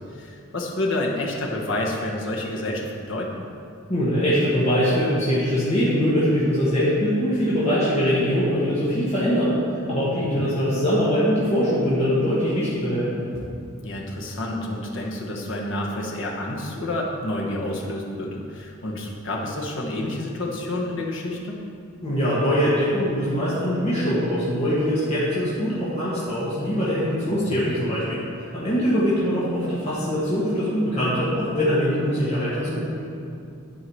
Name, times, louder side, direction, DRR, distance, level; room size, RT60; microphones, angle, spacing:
voice 1, 0.0-3.4 10.2-10.5 13.8-21.7 27.0-27.4, left 1 dB, 60° left, -1 dB, 1.2 m, -29 dB
voice 2, 3.9-9.5 9.9-13.1 22.0-32.9, equal, 30° left, -10 dB, 1.5 m, -22 dB
11.0 x 4.7 x 4.7 m, 2.6 s
head